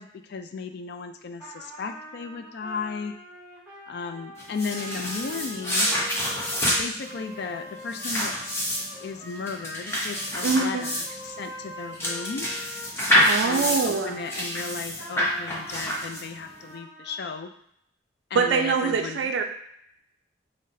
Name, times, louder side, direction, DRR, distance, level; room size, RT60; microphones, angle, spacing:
voice 1, 0.0-3.1 3.9-5.9 6.8-8.5 8.9-12.5 13.4-17.5 18.3-19.3, left 4 dB, 55° left, 7 dB, 0.3 m, -35 dB
Trumpet, 1.4-14.5 14.9-17.5, left 1 dB, 5° right, 1.5 m, -44 dB
sound 1, 4.4-16.5, equal, 15° left, 0.6 m, -27 dB
voice 2, 10.4-10.9 13.2-14.2 18.3-19.4, right 5 dB, 70° right, 4 dB, 0.3 m, -24 dB
5.5 x 2.1 x 2.6 m, 0.73 s
head